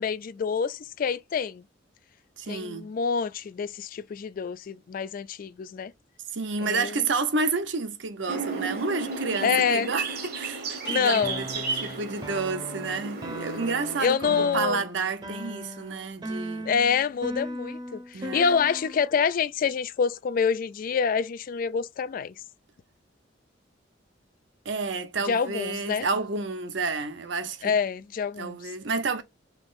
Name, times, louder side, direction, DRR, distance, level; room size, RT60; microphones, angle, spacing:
voice 1, 0.0-1.6 2.5-5.9 6.6-7.0 9.4-9.9 10.9-11.9 14.0-14.8 16.6-22.3 25.2-26.1 27.6-28.7, left 6 dB, 45° left, 0.3 m, -27 dB
voice 2, 2.4-2.9 6.3-16.7 18.1-18.5 24.6-27.7 28.4-29.2, right 4 dB, 70° right, 0.7 m, -30 dB
sound 1, 8.3-14.0, right 4 dB, 55° right, 1.1 m, -34 dB
sound 2, 10.8-15.3 15.9-16.3, left 2 dB, 70° left, 1.1 m, -53 dB
sound 3, 11.2-19.1, equal, 25° right, 0.8 m, -38 dB
5.1 x 3.0 x 2.4 m
head